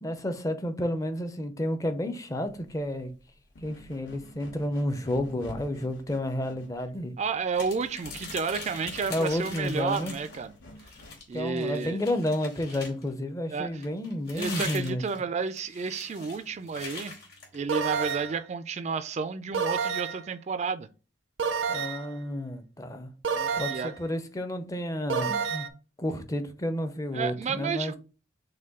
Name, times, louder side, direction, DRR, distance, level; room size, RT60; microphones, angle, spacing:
voice 1, 0.0-3.1 3.6-7.1 9.1-10.1 11.3-15.0 21.7-23.1 23.5-25.7 26.0-27.9, left 1 dB, 20° left, 0.6 m, -31 dB
sound 1, 2.5-11.4, left 1 dB, 80° left, 1.1 m, -50 dB
voice 2, 7.2-10.6 11.3-12.0 13.5-13.8 14.3-17.1 17.5-20.9 23.3-23.9 27.1-28.0, right 5 dB, 35° right, 0.3 m, -31 dB
sound 2, 7.5-10.4 10.8-13.1 13.8-18.2, left 4 dB, 60° left, 2.6 m, -42 dB
sound 3, 17.7-18.4 19.5-20.3 21.4-22.1 23.2-24.0 25.1-25.7, right 6 dB, 90° right, 0.6 m, -29 dB
6.4 x 2.2 x 3.6 m
head